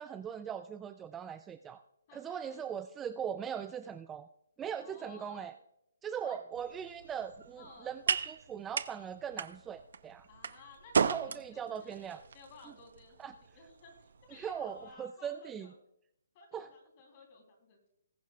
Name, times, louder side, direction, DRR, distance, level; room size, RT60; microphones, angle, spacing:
voice 1, 0.0-1.8 2.1-4.3 4.6-5.5 6.0-10.3 11.0-12.2 12.7-12.8 13.2-13.3 14.3-15.7 16.5-16.7, right 8 dB, 10° right, 9 dB, 0.3 m, -40 dB
voice 2, 2.1-2.6 4.8-5.5 6.2-6.5 7.6-8.0 10.3-15.7 16.3-17.9, left 3 dB, 30° left, 2 dB, 3.2 m, -56 dB
sound 1, 6.5-14.9, right 6 dB, 65° right, 0.7 m, -37 dB
20.5 x 7.4 x 2.3 m, 0.76 s
hypercardioid pair, 165°, 0 cm